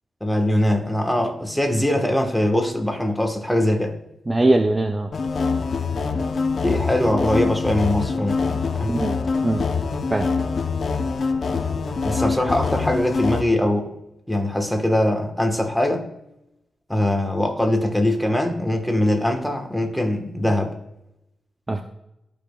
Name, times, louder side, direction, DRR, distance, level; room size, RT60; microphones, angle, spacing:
voice 1, 0.2-3.9 6.5-9.0 12.0-13.9 14.3-16.0 16.9-20.7, left 1 dB, 5° left, 4 dB, 1.1 m, -22 dB
voice 2, 4.3-5.1 8.9-9.2 9.4-9.7 10.1-10.3 21.7-21.8, right 2 dB, 25° right, 6 dB, 0.5 m, -20 dB
sound 1, 5.1-13.4, left 4 dB, 60° left, 0.6 m, -24 dB
13.0 x 5.1 x 2.2 m, 0.86 s
cardioid pair, 75°, 0 cm